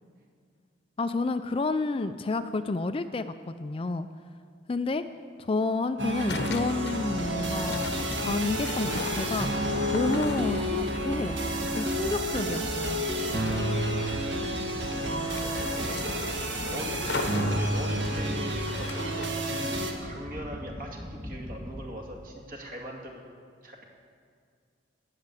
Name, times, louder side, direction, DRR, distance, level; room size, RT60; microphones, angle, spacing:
voice 1, 1.0-4.1 4.7-5.0 5.4-9.5 9.9-11.4 11.8-13.0 13.4-13.6, left 3 dB, 30° left, 10 dB, 0.4 m, -30 dB
sound 1, 6.0-19.9, right 1 dB, 65° right, 1.6 m, -30 dB
sound 2, 6.3-19.3, left 3 dB, 60° left, 0.8 m, -38 dB
sound 3, 7.1-21.8, equal, 15° right, 2.3 m, -40 dB
voice 2, 15.4-23.2 23.6-23.8, right 1 dB, 45° right, 1 dB, 2.1 m, -41 dB
18.0 x 6.7 x 8.3 m, 2.2 s
head